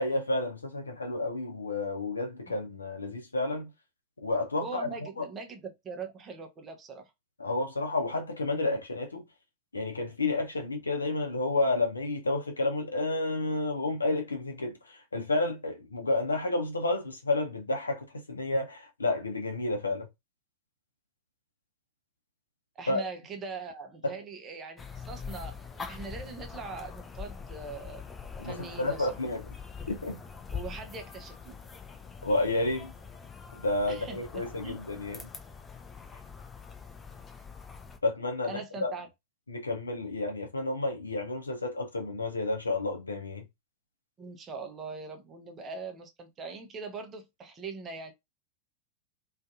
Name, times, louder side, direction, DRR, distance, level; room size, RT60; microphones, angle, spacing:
voice 1, 0.0-3.7 4.2-4.9 5.2-5.3 7.4-9.2 9.7-20.1 22.9-23.0 24.0-24.1 28.4-29.4 29.9-30.2 32.2-32.9 33.6-35.2 38.0-38.9 39.5-43.4, left 2 dB, 75° left, 0.7 m, -30 dB
voice 2, 4.6-7.1 22.8-28.0 28.4-29.2 30.5-31.6 33.9-34.8 38.5-39.1 44.2-48.1, right 4 dB, 25° right, 0.6 m, -41 dB
sound 1, 24.8-38.0, left 5 dB, 20° left, 0.5 m, -43 dB
2.6 x 2.4 x 2.3 m
figure-of-eight pair, 90°, 0 cm